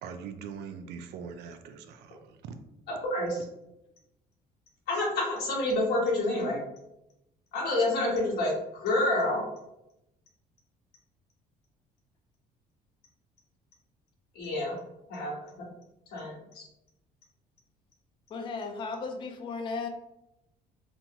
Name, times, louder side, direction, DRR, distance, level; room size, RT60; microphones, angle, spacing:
voice 1, 0.0-2.6, right 6 dB, 80° right, 8 dB, 0.4 m, -42 dB
voice 2, 3.0-3.4 4.9-6.6 7.5-8.5 8.8-9.5 14.3-14.7 15.1-15.3 16.1-16.7, left 1 dB, 75° left, -4 dB, 1.2 m, -28 dB
voice 3, 18.3-19.9, left 4 dB, 30° left, 4 dB, 0.3 m, -35 dB
3.0 x 2.1 x 2.8 m, 0.87 s
cardioid pair, 110°, 17 cm